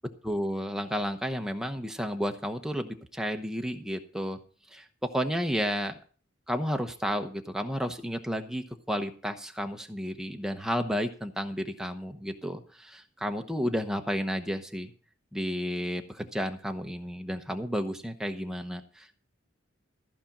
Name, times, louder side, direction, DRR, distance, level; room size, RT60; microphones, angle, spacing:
voice 1, 0.2-4.4 4.7-6.0 6.5-14.9 15.3-19.2, equal, 5° right, 5 dB, 0.9 m, -32 dB
14.5 x 5.2 x 7.3 m, 0.41 s
head